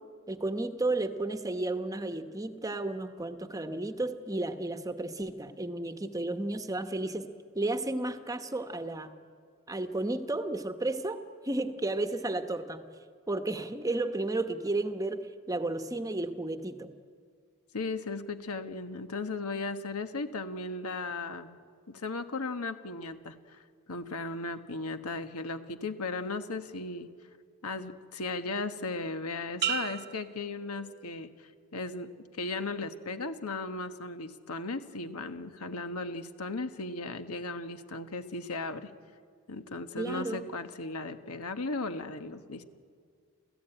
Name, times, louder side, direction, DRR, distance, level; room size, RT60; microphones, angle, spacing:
voice 1, 0.3-7.3 7.5-9.1 9.7-11.2 11.4-12.8 13.3-15.2 15.5-16.9 40.0-40.4, right 2 dB, 15° right, 8 dB, 1.0 m, -32 dB
voice 2, 17.7-21.6 21.9-23.6 23.9-27.1 27.6-31.3 31.7-38.9 39.5-42.6, left 3 dB, 85° left, 8 dB, 1.4 m, -36 dB
sound 1, 29.6-31.4 31.9-32.3, right 10 dB, 50° right, 0.7 m, -36 dB
30.0 x 14.5 x 9.0 m, 2.1 s
head